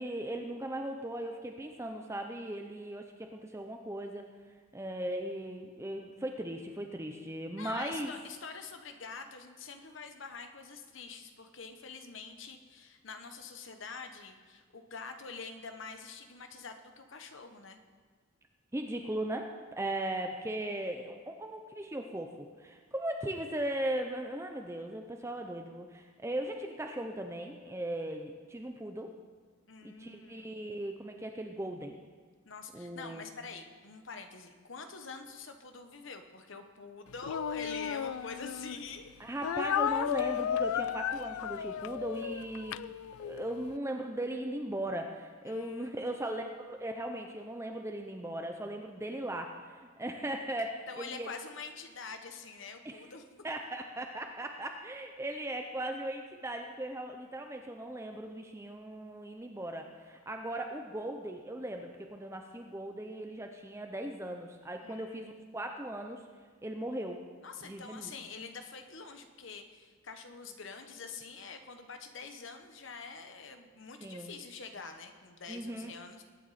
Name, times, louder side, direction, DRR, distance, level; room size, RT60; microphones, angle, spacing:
voice 1, 0.0-4.3 4.7-8.1 18.7-29.1 29.8-32.0 32.7-33.3 39.2-42.8 43.2-51.3 52.8-53.0 53.4-66.2 66.6-67.2 67.6-68.1 74.0-74.3 75.5-75.9, right 1 dB, 15° right, 4 dB, 0.6 m, -38 dB
voice 2, 7.6-17.8 29.7-30.5 32.4-39.1 39.6-39.7 45.5-46.5 50.9-53.2 64.8-65.4 65.6-65.8 67.4-76.2, left 4 dB, 60° left, 6 dB, 1.0 m, -46 dB
Speech, 37.2-38.8 39.4-43.5, left 9 dB, 80° left, 0.3 m, -34 dB
21.0 x 9.3 x 4.2 m, 1.5 s
head